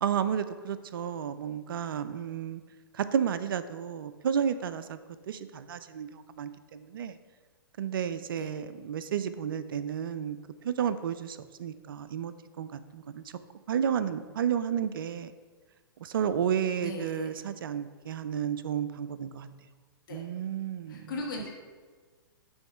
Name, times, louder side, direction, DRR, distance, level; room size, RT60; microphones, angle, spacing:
voice 1, 0.0-2.6 2.9-5.0 5.3-7.2 7.8-10.4 10.6-13.2 13.7-15.3 16.0-19.5 20.1-21.2, right 8 dB, 65° right, 13 dB, 0.4 m, -32 dB
voice 2, 16.8-17.3 20.1-20.2 20.9-21.5, left 2 dB, 60° left, -1 dB, 1.7 m, -38 dB
6.9 x 3.1 x 5.4 m, 1.4 s
hypercardioid pair, 120°, 12 cm